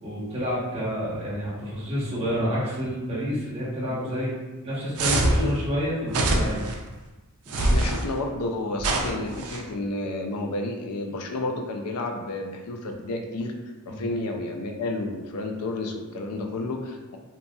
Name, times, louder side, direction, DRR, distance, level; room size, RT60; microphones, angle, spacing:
voice 1, 0.0-4.3 4.6-6.7 13.9-14.0, equal, 25° right, -8 dB, 0.9 m, -29 dB
sound 1, 5.0-5.5 6.1-6.7 7.5-8.0 8.8-9.6, right 2 dB, 80° right, 0.4 m, -24 dB
voice 2, 5.2-5.6 7.6-13.5 13.9-17.2, left 2 dB, 85° left, 3 dB, 0.4 m, -31 dB
2.9 x 2.7 x 2.2 m, 1.2 s
head